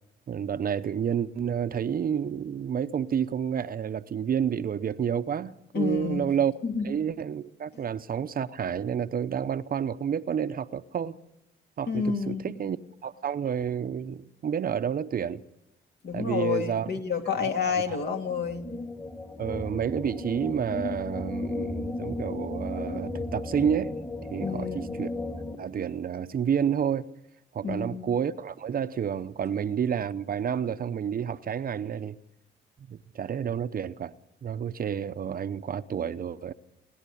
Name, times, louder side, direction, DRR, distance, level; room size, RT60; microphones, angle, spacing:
voice 1, 0.3-6.5 6.8-11.2 11.8-12.8 13.0-15.4 16.1-16.9 17.4-18.0 19.4-24.0 24.3-25.1 25.6-27.1 27.5-32.2 32.9-34.1 34.4-36.5, right 8 dB, 45° right, 0.8 m, -30 dB
voice 2, 5.7-6.3 6.6-7.0 11.9-12.5 16.0-18.7 24.4-24.9 27.6-28.2, left 6 dB, 55° left, 2.9 m, -29 dB
sound 1, 18.2-25.6, left 2 dB, 15° left, 2.3 m, -35 dB
29.0 x 11.5 x 8.5 m
cardioid pair, 90°, 20 cm